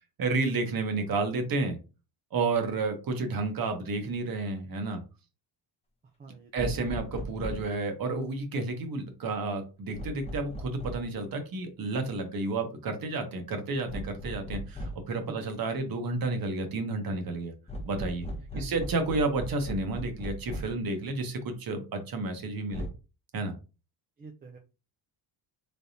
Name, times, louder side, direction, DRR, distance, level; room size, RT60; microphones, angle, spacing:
voice 1, 0.2-1.8 2.3-5.0 6.5-17.5 17.8-18.3 18.5-22.9 23.3-23.5, right 3 dB, 45° right, 6 dB, 1.1 m, -31 dB
voice 2, 6.2-6.5 15.3-15.5 18.5-18.8 24.2-24.6, right 4 dB, 20° right, 3 dB, 0.4 m, -46 dB
sound 1, 6.6-7.8 9.9-11.2 13.9-15.1 17.7-20.8 22.7-22.9, equal, 15° left, 0.7 m, -38 dB
3.7 x 3.4 x 2.7 m, 0.31 s
cardioid pair, 135°, 48 cm